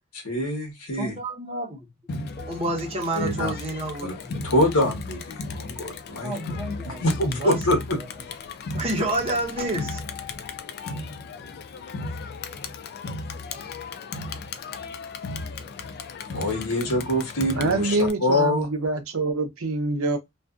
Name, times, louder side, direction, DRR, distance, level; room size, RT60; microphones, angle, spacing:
voice 1, 0.1-1.2 3.1-3.5 4.0-4.1 4.4-6.3 6.9-8.0 16.3-18.7, left 1 dB, 75° left, 1.1 m, -25 dB
voice 2, 0.9-1.8 2.5-4.3 6.2-7.0 7.4-7.6 8.7-10.0, right 1 dB, 30° right, 0.9 m, -29 dB
Crowd, 2.1-18.1, left 3 dB, 50° left, 0.3 m, -35 dB
Crystal glasses, 2.4-3.9 9.6-12.9, left 8 dB, 25° left, 1.0 m, -46 dB
voice 3, 17.5-20.2, right 3 dB, 70° right, 0.7 m, -25 dB
2.5 x 2.4 x 2.4 m
head